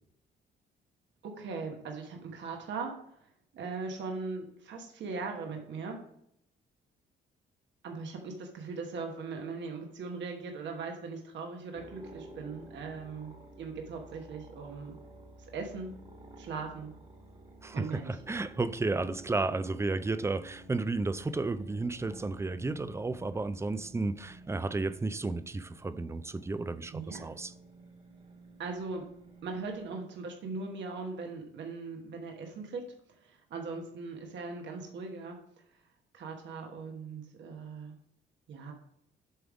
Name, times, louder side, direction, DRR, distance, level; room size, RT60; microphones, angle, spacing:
voice 1, 1.2-6.0 7.8-15.0 15.4-15.9 16.4-16.9 17.7-18.2 26.9-27.2 28.6-29.1 29.4-35.4 35.7-35.8 36.1-37.9 38.5-38.7, right 4 dB, 65° right, 1.2 m, -40 dB
sound 1, 11.7-29.9, right 1 dB, 30° right, 1.6 m, -52 dB
voice 2, 17.6-27.5, right 3 dB, 15° right, 0.4 m, -33 dB
7.9 x 3.5 x 4.8 m
cardioid pair, 90°, 20 cm